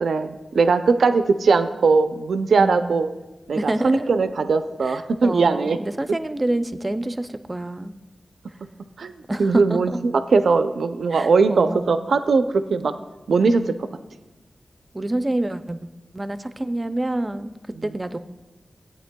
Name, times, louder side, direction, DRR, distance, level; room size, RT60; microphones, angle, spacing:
voice 1, 0.0-3.1 3.5-5.8 9.0-9.1 9.4-12.9 13.3-13.9, right 4 dB, 90° right, 10 dB, 0.4 m, -20 dB
voice 2, 2.6-3.0 3.6-4.1 4.8-8.0 9.3-10.0 11.1-12.0 14.9-15.8 16.1-18.2, right 1 dB, 20° right, 11 dB, 0.4 m, -27 dB
16.0 x 8.8 x 2.2 m, 1.1 s
wide cardioid pair, 130°, 0 cm